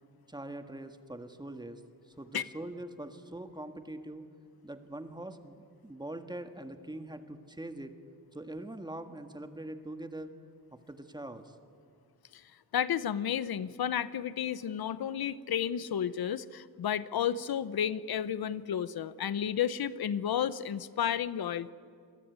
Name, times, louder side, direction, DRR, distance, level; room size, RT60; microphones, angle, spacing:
voice 1, 0.3-4.3 4.6-7.9 8.3-10.3 10.7-11.5, right 1 dB, 10° right, 8 dB, 1.6 m, -43 dB
voice 2, 12.7-21.7, left 9 dB, 85° left, 16 dB, 0.9 m, -32 dB
28.0 x 22.0 x 9.6 m, 2.3 s
wide cardioid pair, 155°, 36 cm